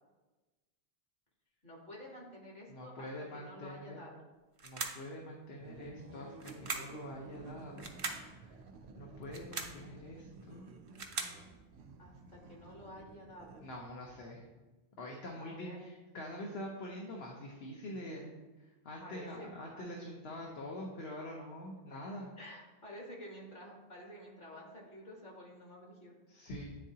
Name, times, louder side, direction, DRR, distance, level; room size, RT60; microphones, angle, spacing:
voice 1, 1.6-3.1 3.3-4.1 12.0-13.7 15.4-15.9 19.0-20.0 22.4-26.1, left 1 dB, 55° left, -2 dB, 1.3 m, -50 dB
voice 2, 2.7-4.0 4.6-7.9 8.3-8.5 8.9-10.7 13.6-14.4 15.0-18.3 18.8-22.3 26.3-26.8, left 1 dB, 75° left, -1 dB, 1.0 m, -45 dB
sound 1, 4.6-5.1 6.4-7.0 7.8-8.3 9.2-9.8 10.7-11.4, right 4 dB, 40° right, 0.5 m, -40 dB
sound 2, 5.6-14.1, right 4 dB, 85° right, 0.8 m, -54 dB
9.6 x 3.7 x 2.8 m, 1.2 s
omnidirectional pair, 1.1 m